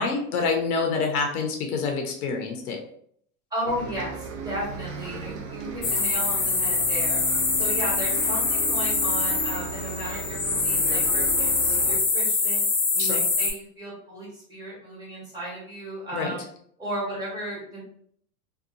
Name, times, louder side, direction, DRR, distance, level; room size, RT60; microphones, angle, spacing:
voice 1, 0.0-2.8 13.0-13.2 16.1-16.3, left 4 dB, 75° left, 3 dB, 0.8 m, -27 dB
voice 2, 3.5-7.2 7.5-12.6 12.9-16.4 16.8-17.8, right 1 dB, 10° right, -6 dB, 1.2 m, -35 dB
Bus, 3.7-12.0, right 5 dB, 60° right, 0.6 m, -36 dB
sound 1, 5.8-13.5, left 4 dB, 30° left, 0.7 m, -24 dB
2.7 x 2.3 x 2.5 m, 0.65 s
supercardioid pair, 125°, 45 cm